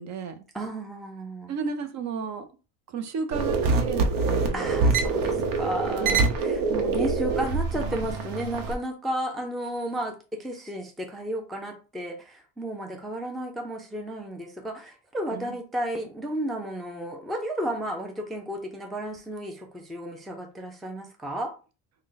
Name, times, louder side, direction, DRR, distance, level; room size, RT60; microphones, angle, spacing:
voice 1, 0.0-0.4 1.5-2.5 2.9-4.6 6.0-6.3 15.3-15.6, right 5 dB, 45° right, 8 dB, 0.6 m, -33 dB
voice 2, 0.5-1.5 4.5-21.5, right 1 dB, ahead, 3 dB, 0.4 m, -33 dB
sound 1, 3.3-8.7, right 4 dB, 75° right, 0.9 m, -25 dB
3.7 x 2.2 x 3.8 m, 0.33 s
cardioid pair, 125°, 39 cm